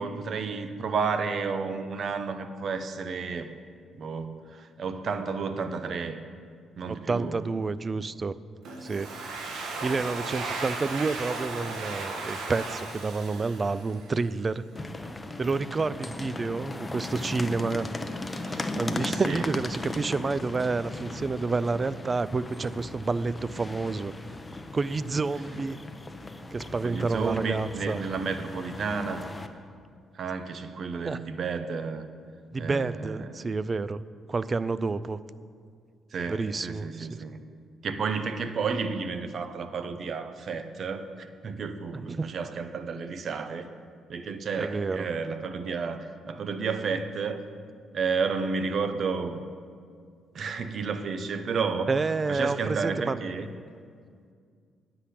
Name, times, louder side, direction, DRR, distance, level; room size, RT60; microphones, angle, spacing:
voice 1, 0.0-3.5 4.0-6.2 6.8-7.4 10.5-10.6 19.1-19.4 26.8-29.2 30.1-32.0 32.6-33.5 36.1-37.4 37.8-43.7 44.1-47.4 47.9-49.4 50.3-51.9 52.3-53.5, right 5 dB, 55° right, 9 dB, 0.7 m, -31 dB
voice 2, 6.9-8.4 8.8-9.1 9.6-14.6 15.4-17.9 18.2-24.1 24.7-25.8 26.5-28.0 31.1-31.2 32.5-35.2 36.3-37.2 42.1-42.3 44.6-45.1 51.9-53.2, right 4 dB, 30° right, 17 dB, 0.3 m, -29 dB
Domestic sounds home sounds, 8.6-14.3, right 3 dB, 75° right, 1.4 m, -36 dB
sound 1, 14.7-29.5, left 2 dB, 20° left, 0.7 m, -37 dB
9.7 x 5.9 x 8.4 m, 2.2 s
cardioid pair, 90°, 0 cm